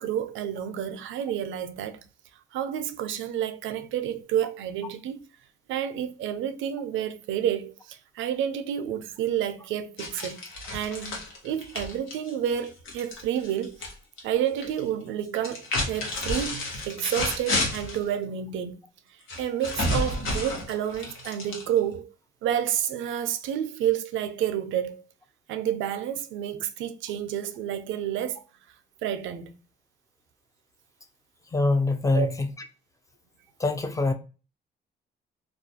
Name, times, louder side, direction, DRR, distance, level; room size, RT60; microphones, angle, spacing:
voice 1, 0.0-2.0 2.5-5.3 5.7-10.4 10.7-13.9 14.2-18.8 19.1-22.1 22.4-25.0 25.5-28.4 29.0-29.5 32.1-32.3, right 10 dB, 80° right, 0.4 m, -30 dB
sound 1, 10.0-13.9 14.2-14.8 15.3-18.0 19.3-22.0, left 2 dB, 80° left, 1.0 m, -31 dB
voice 2, 31.5-32.5 33.6-34.1, left 2 dB, 15° left, 0.4 m, -24 dB
2.4 x 2.2 x 2.7 m
cardioid pair, 90°, 20 cm